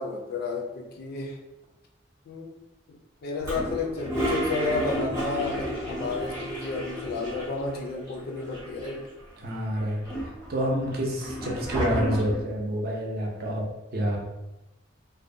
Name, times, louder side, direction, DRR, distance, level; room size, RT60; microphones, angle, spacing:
voice 1, 0.0-1.4 2.3-2.6 2.9-3.0 3.2-9.0, left 3 dB, 55° left, 1 dB, 0.3 m, -31 dB
Toilet flush, 3.4-7.8 8.1-8.2 8.4-9.2 9.7-12.5, equal, 15° right, 0.7 m, -32 dB
voice 2, 9.4-13.7 13.9-14.2, equal, 55° right, -2 dB, 0.6 m, -28 dB
2.5 x 2.1 x 2.6 m, 0.99 s
head